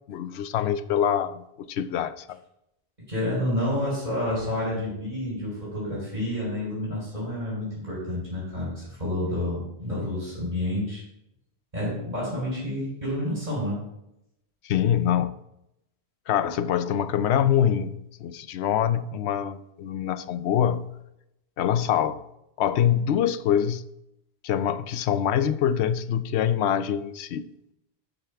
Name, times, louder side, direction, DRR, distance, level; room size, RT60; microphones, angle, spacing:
voice 1, 0.1-2.4 14.6-15.4 16.3-17.9 18.2-20.9 21.6-22.2 22.6-23.8 24.4-27.5, left 9 dB, 80° left, 13 dB, 0.8 m, -24 dB
voice 2, 3.1-11.0 11.7-13.8, left 1 dB, 45° right, -8 dB, 4.4 m, -29 dB
12.5 x 6.8 x 3.5 m, 0.85 s
omnidirectional pair, 1.1 m